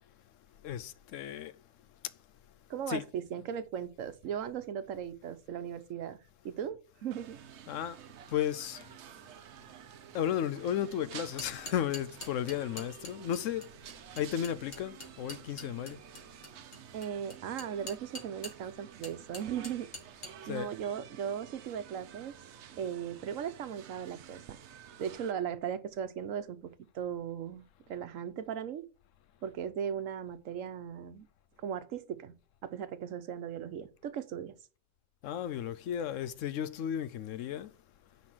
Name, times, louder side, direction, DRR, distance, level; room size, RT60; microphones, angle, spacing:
voice 1, 0.6-1.5 2.9-3.1 7.7-8.0 8.3-8.9 10.1-13.7 14.2-16.0 20.5-20.7 35.2-37.7, left 10 dB, 75° left, 1.0 m, -34 dB
voice 2, 2.7-6.2 6.4-7.4 16.9-19.9 20.5-22.3 22.8-24.6 25.0-28.8 29.4-31.3 31.6-32.3 32.6-34.6, right 8 dB, 80° right, 1.2 m, -37 dB
sound 1, 7.1-25.3, right 10 dB, 65° right, 0.9 m, -51 dB
sound 2, 11.4-18.7 19.0-20.3, left 1 dB, 50° left, 1.9 m, -45 dB
9.6 x 4.2 x 6.1 m
omnidirectional pair, 1.3 m